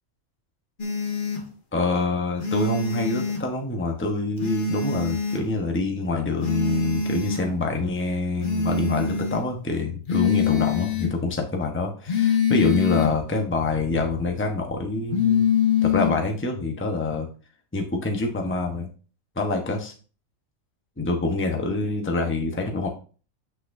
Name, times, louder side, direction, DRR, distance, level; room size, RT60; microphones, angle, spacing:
sound 1, 0.8-1.4 2.4-3.4 4.4-5.4 6.4-7.4 8.4-9.4 10.1-11.1 12.1-13.1 15.1-16.2, left 6 dB, 40° left, 1.4 m, -24 dB
voice 1, 1.7-15.4 15.8-17.3 17.7-18.9 19.4-19.9 21.0-22.9, left 3 dB, 10° left, 2 dB, 1.0 m, -26 dB
8.1 x 6.4 x 2.7 m, 0.37 s
omnidirectional pair, 1.4 m